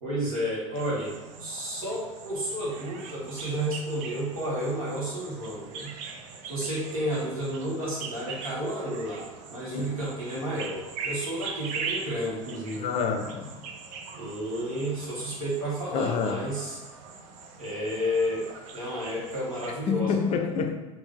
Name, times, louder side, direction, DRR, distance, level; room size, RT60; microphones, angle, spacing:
voice 1, 0.0-1.1 1.4-5.9 6.5-12.8 14.1-16.8 17.6-18.4 18.7-20.4, equal, 80° right, -6 dB, 1.3 m, -31 dB
sound 1, 0.7-19.8, right 5 dB, 50° right, 0.5 m, -41 dB
voice 2, 12.8-13.5 15.9-16.5 19.9-20.7, left 5 dB, 35° left, 5 dB, 0.5 m, -27 dB
3.5 x 2.4 x 3.5 m, 1.1 s
figure-of-eight pair, 75°, 18 cm